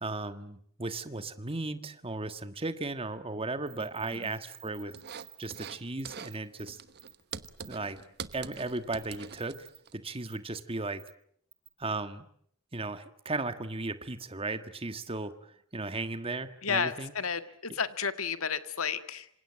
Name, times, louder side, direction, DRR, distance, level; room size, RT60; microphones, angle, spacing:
voice 1, 0.0-4.9 5.4-6.8 7.7-8.0 8.3-9.7 9.9-11.0 11.8-12.2 12.7-17.1, right 2 dB, 25° right, 10 dB, 1.6 m, -36 dB
sound 1, 3.7-5.7 6.0-6.1 6.3-6.6 7.0-7.7 8.3-8.6 9.0-9.8 10.3-10.4 11.0-11.1 11.5-11.7, right 17 dB, 75° right, 6.5 m, -52 dB
sound 2, 4.9-5.8 6.0-6.4 6.7-9.9, right 6 dB, 50° right, 1.2 m, -44 dB
voice 2, 16.6-19.3, left 6 dB, 75° left, 11 dB, 1.8 m, -32 dB
27.0 x 26.5 x 7.6 m, 0.65 s
head